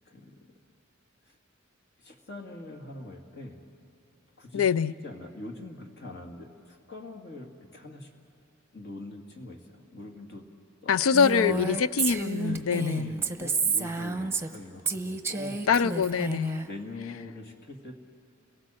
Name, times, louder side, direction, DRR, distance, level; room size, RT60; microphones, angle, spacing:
voice 1, 0.1-0.5 2.0-3.6 4.4-8.1 8.7-10.5 10.8-11.0 11.4-11.6 12.4-15.8 16.6-17.9, left 2 dB, 55° left, 2.2 m, -43 dB
voice 2, 4.5-4.9 10.9-13.1 15.7-16.6, left 6 dB, 90° left, 0.5 m, -24 dB
Female speech woman speaking, 11.1-14.6 14.9-16.6, right 4 dB, 10° right, 0.9 m, -30 dB
30.0 x 18.0 x 7.7 m
head